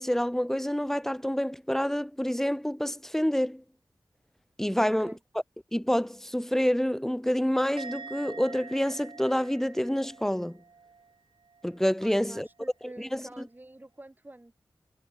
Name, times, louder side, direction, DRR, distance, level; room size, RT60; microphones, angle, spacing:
voice 1, 0.0-3.6 4.6-5.1 5.7-10.6 11.6-12.5 13.0-13.5, equal, 5° left, 1.8 m, -28 dB
voice 2, 4.7-5.2 12.0-14.5, right 1 dB, 20° right, 4.0 m, -47 dB
Musical instrument, 7.8-11.2 11.4-11.9, right 5 dB, 80° right, 5.8 m, -46 dB
wide cardioid pair, 70°, 8 cm